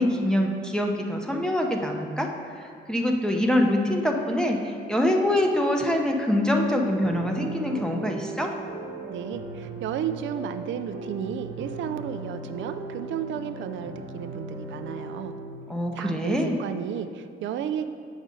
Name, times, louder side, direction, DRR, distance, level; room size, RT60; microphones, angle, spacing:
voice 1, 0.0-8.5 15.7-16.6, left 1 dB, 5° left, 1 dB, 0.7 m, -25 dB
sound 1, 6.5-15.5, right 2 dB, 90° right, 1.0 m, -38 dB
voice 2, 9.1-15.3 15.9-17.9, right 9 dB, 70° right, 9 dB, 0.4 m, -33 dB
7.8 x 5.3 x 3.7 m, 2.2 s
cardioid pair, 90°, 20 cm